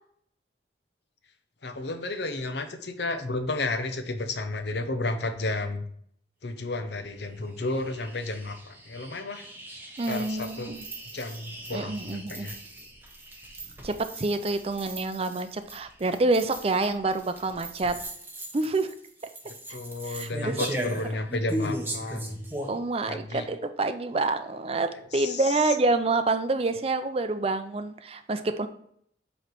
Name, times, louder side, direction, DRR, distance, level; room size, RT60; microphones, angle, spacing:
voice 1, 1.6-5.8 6.4-9.5 10.1-10.7 11.1-12.6 19.7-22.5 23.1-23.5 24.9-25.7, left 2 dB, 65° left, 7 dB, 0.7 m, -32 dB
sound 1, 7.4-22.8, right 1 dB, 10° right, 0.9 m, -38 dB
voice 2, 10.0-10.8 11.7-12.5 13.8-18.0 18.5-18.9 20.1-20.6 22.7-28.7, right 3 dB, 30° right, 9 dB, 0.4 m, -27 dB
7.7 x 3.2 x 4.6 m, 0.66 s
head